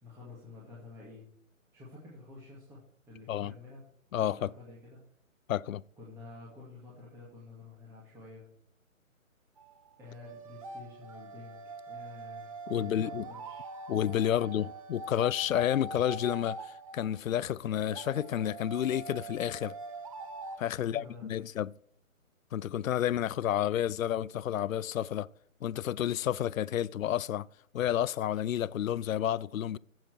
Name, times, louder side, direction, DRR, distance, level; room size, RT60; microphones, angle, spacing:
voice 1, 0.0-1.3 1.7-3.8 4.1-5.0 6.0-8.5 10.0-13.7 14.3-14.6 20.8-21.4, left 3 dB, 5° right, 2.0 m, -50 dB
voice 2, 4.1-4.5 5.5-5.8 12.7-13.3 13.9-19.7 20.6-21.7 22.5-25.3 25.6-27.5 27.7-29.8, left 11 dB, 70° left, 0.5 m, -30 dB
sound 1, 9.6-20.6, right 3 dB, 25° right, 0.7 m, -44 dB
15.0 x 7.5 x 4.6 m
hypercardioid pair, 150°, 42 cm